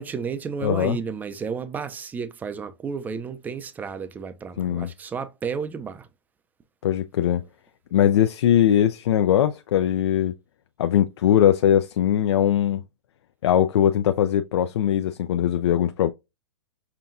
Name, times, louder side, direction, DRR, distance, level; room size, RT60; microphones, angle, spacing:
voice 1, 0.0-6.1, right 6 dB, 10° right, 0.4 m, -32 dB
voice 2, 0.6-1.0 4.6-4.9 6.8-7.4 7.9-10.3 10.8-12.8 13.4-16.1, left 10 dB, 70° left, 0.4 m, -20 dB
5.7 x 2.2 x 2.6 m
hypercardioid pair, 135°, 15 cm